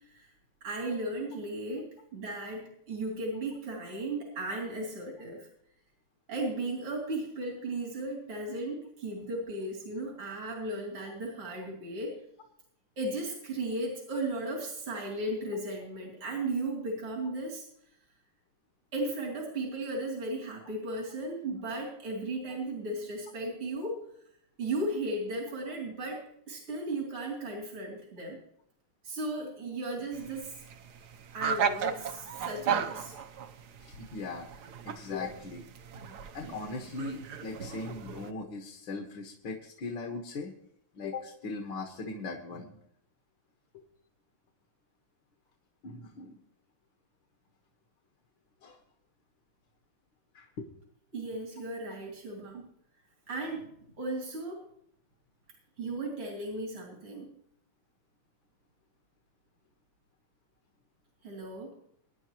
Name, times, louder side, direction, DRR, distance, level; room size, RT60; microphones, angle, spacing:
voice 1, 0.6-5.5 6.3-12.2 13.0-17.7 18.9-24.0 24.6-28.4 29.0-30.5 31.3-33.1 35.9-36.1 37.7-37.9 51.1-52.7 53.3-53.7 54.0-54.7 55.8-57.3 61.2-61.7, right 2 dB, 80° right, -2 dB, 3.7 m, -36 dB
sound 1, 30.1-38.3, right 7 dB, 65° right, 1.1 m, -36 dB
voice 2, 33.8-34.5 34.8-35.7 36.3-40.5 40.9-42.8 43.7-43.8 45.8-46.4 48.6-48.8 50.3-50.7, left 3 dB, 65° left, 1 dB, 2.1 m, -39 dB
23.5 x 10.5 x 3.0 m, 0.71 s
omnidirectional pair, 2.3 m